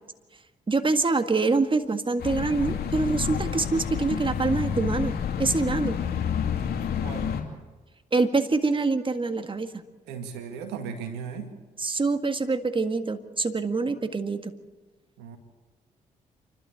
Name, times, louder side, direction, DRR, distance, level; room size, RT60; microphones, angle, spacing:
voice 1, 0.7-5.1 5.4-6.0 8.1-9.7 11.8-14.5, right 3 dB, 30° right, 8 dB, 1.9 m, -25 dB
sound 1, 2.2-7.4, left 8 dB, 70° left, 2.7 m, -29 dB
voice 2, 7.0-7.3 10.1-11.5 15.2-15.4, right 6 dB, 85° right, 6 dB, 2.0 m, -36 dB
29.0 x 12.5 x 8.2 m, 1.3 s
hypercardioid pair, 45°, 17 cm